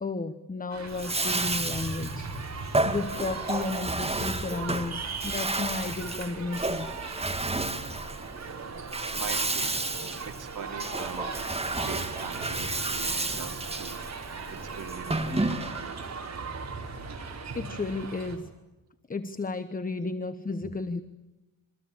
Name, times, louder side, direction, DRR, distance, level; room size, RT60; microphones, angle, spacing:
voice 1, 0.0-2.3 2.6-6.9 17.5-18.5 19.1-21.0, left 3 dB, 25° left, 11 dB, 1.1 m, -33 dB
sound 1, 0.7-18.4, right 4 dB, 50° right, 4.6 m, -39 dB
Bathtub (filling or washing), 0.9-16.0, right 2 dB, 15° right, 2.3 m, -31 dB
voice 2, 9.1-9.8 10.2-11.3 11.8-16.0, right 6 dB, 70° right, 4 dB, 2.9 m, -42 dB
27.5 x 24.5 x 8.8 m, 1.1 s
wide cardioid pair, 140°, 34 cm